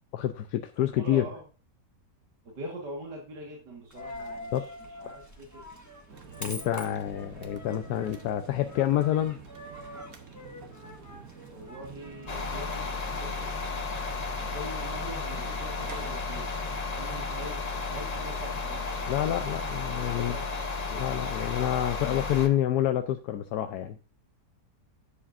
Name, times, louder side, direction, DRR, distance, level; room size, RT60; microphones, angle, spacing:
voice 1, 0.1-1.3 4.5-4.6 6.4-9.4 19.1-20.4 20.9-24.0, left 12 dB, 75° left, 8 dB, 1.1 m, -28 dB
voice 2, 0.9-1.4 2.4-5.6 11.5-12.9 13.1-13.5 14.5-16.5 17.0-19.3 20.0-20.7 20.9-21.1, right 1 dB, 75° right, -1 dB, 2.3 m, -43 dB
Coin (dropping), 3.9-20.5, left 1 dB, 10° left, 1.3 m, -47 dB
sound 1, 6.1-20.1, right 6 dB, 60° right, 1.4 m, -48 dB
sound 2, 12.3-22.5, left 4 dB, 35° left, 0.7 m, -33 dB
11.0 x 7.3 x 2.6 m, 0.35 s
omnidirectional pair, 1.8 m